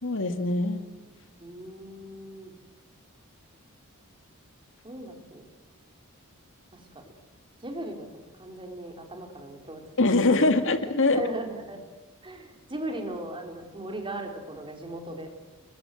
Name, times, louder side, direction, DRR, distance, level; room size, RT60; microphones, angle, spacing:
voice 1, 0.0-0.8 10.0-11.2, left 2 dB, 60° left, 8 dB, 2.0 m, -23 dB
voice 2, 1.4-2.5 4.8-5.5 6.7-7.0 7.6-8.1 8.4-9.8 10.3-10.4 11.1-11.8 12.2-15.3, right 1 dB, 25° right, 3 dB, 4.1 m, -37 dB
30.0 x 22.5 x 7.8 m, 1.2 s
head